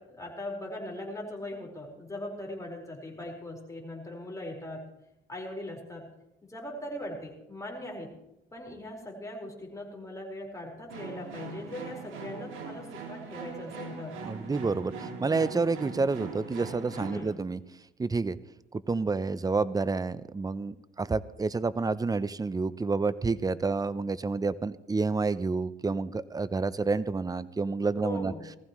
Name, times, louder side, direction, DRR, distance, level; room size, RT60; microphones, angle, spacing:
voice 1, 0.0-4.8 5.3-6.1 6.5-8.1 8.5-14.2 17.1-17.3 28.0-28.5, left 1 dB, 15° left, -1 dB, 4.7 m, -40 dB
sound 1, 10.9-17.3, right 4 dB, 85° right, 2.9 m, -41 dB
voice 2, 14.2-17.6 18.0-18.4 18.7-28.3, right 4 dB, 20° right, 17 dB, 0.6 m, -29 dB
20.0 x 14.5 x 3.1 m, 0.88 s
cardioid pair, 90°, 20 cm